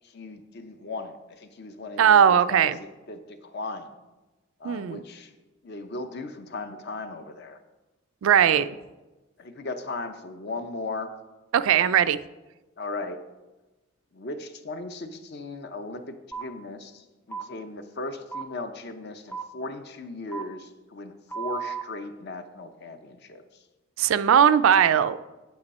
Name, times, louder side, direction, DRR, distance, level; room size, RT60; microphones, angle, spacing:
voice 1, 0.0-3.9 4.6-5.3 5.6-7.6 8.5-8.7 9.4-11.1 12.8-13.2 14.1-23.4, left 2 dB, 50° left, 8 dB, 0.7 m, -37 dB
voice 2, 2.0-2.8 4.6-5.0 8.2-8.7 11.5-12.2 24.0-25.2, right 8 dB, 65° right, 13 dB, 0.3 m, -19 dB
sound 1, 16.3-16.4 17.3-17.5 18.3-18.4 19.3-19.4 20.3-20.4 21.3-21.8, right 6 dB, 10° left, 0.5 m, -33 dB
8.0 x 7.9 x 4.2 m, 1.1 s
head